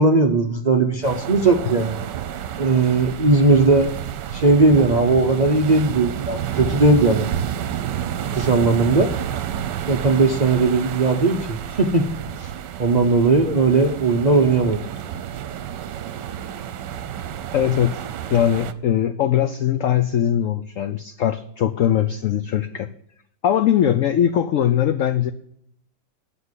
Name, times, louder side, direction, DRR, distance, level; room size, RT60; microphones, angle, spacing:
voice 1, 0.0-2.0 2.6-3.9 4.3-7.3 8.3-9.1 9.9-12.1 12.4-12.5 12.8-14.8, right 3 dB, 50° right, 4 dB, 0.5 m, -18 dB
sound 1, 1.0-18.7, right 9 dB, 75° right, 1.3 m, -30 dB
voice 2, 17.5-22.9 23.4-25.3, left 10 dB, 80° left, 11 dB, 0.7 m, -21 dB
9.6 x 5.6 x 8.1 m, 0.70 s
omnidirectional pair, 1.9 m